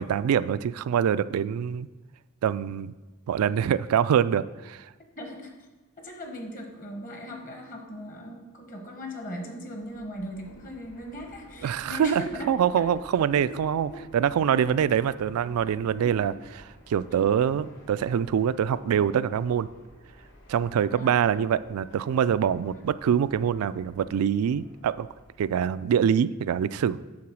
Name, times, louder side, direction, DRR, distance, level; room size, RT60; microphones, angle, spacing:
voice 1, 0.0-1.9 2.4-2.9 3.3-4.9 11.6-19.7 20.5-25.1 25.4-27.0, right 8 dB, 85° right, 16 dB, 0.3 m, -25 dB
voice 2, 5.2-5.5 6.0-12.5 13.3-13.5 13.9-14.0 14.4-14.6 16.0-16.2 17.1-17.3 20.7-21.5 22.7-22.9, equal, 35° left, 3 dB, 1.1 m, -39 dB
Fixed-wing aircraft airplane, 9.7-26.1, equal, 55° left, 1.3 m, -53 dB
8.6 x 3.9 x 6.2 m, 1.2 s
head